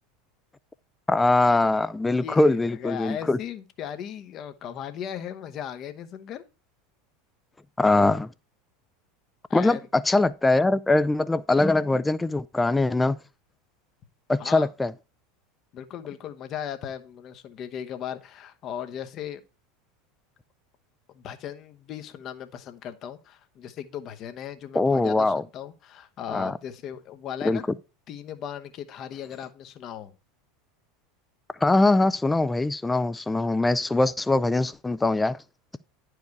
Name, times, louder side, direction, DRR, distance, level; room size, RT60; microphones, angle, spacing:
voice 1, 1.1-3.4 7.8-8.3 9.5-13.2 14.3-14.9 24.7-25.4 26.3-26.5 27.4-27.6 31.6-35.4, left 2 dB, 10° left, 0.4 m, -22 dB
voice 2, 2.2-6.4 9.5-9.8 14.4-14.7 15.7-19.4 21.1-27.6 28.1-30.1, left 9 dB, 40° left, 0.9 m, -37 dB
10.5 x 4.8 x 4.6 m
figure-of-eight pair, 80°, 0 cm